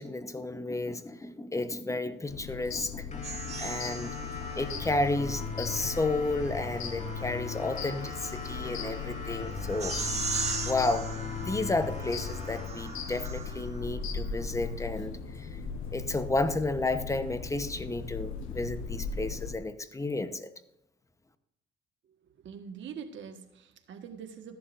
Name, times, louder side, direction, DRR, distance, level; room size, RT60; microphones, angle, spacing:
voice 1, 0.0-10.2 10.7-15.5 15.9-20.5, left 2 dB, 15° left, 10 dB, 0.9 m, -32 dB
sound 1, 2.3-19.6, left 5 dB, 85° left, 1.3 m, -38 dB
sound 2, 3.1-14.1, left 5 dB, 35° left, 2.9 m, -40 dB
sound 3, 3.2-5.2 6.6-13.8, right 4 dB, 35° right, 1.9 m, -39 dB
voice 2, 22.4-24.6, right 7 dB, 70° right, 5 dB, 1.5 m, -43 dB
14.0 x 11.0 x 2.6 m, 0.84 s
cardioid pair, 90°, 20 cm